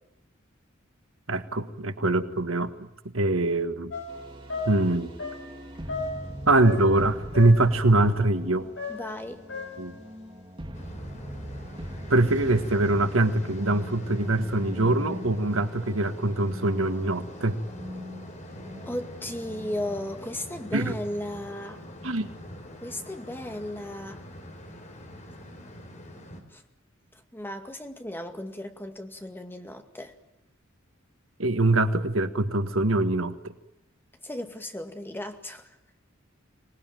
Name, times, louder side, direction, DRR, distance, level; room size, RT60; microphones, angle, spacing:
voice 1, 1.3-2.9 3.1-3.9 4.7-5.1 6.5-8.7 9.8-9.9 12.1-17.6 20.7-21.0 22.0-22.3 31.4-33.5, right 2 dB, 90° right, 10 dB, 1.7 m, -23 dB
sound 1, 3.9-7.1 7.3-7.8 8.8-10.0, left 3 dB, 65° left, 6.5 m, -36 dB
sound 2, 4.1-20.1, equal, 25° right, 2.7 m, -42 dB
voice 2, 8.9-9.4 18.9-21.8 22.8-24.2 26.5-26.6 27.3-30.1 34.2-35.7, left 1 dB, 10° left, 6 dB, 2.2 m, -35 dB
sound 3, 10.7-26.4, left 1 dB, 35° left, 4.3 m, -44 dB
25.5 x 19.5 x 9.2 m, 0.93 s
head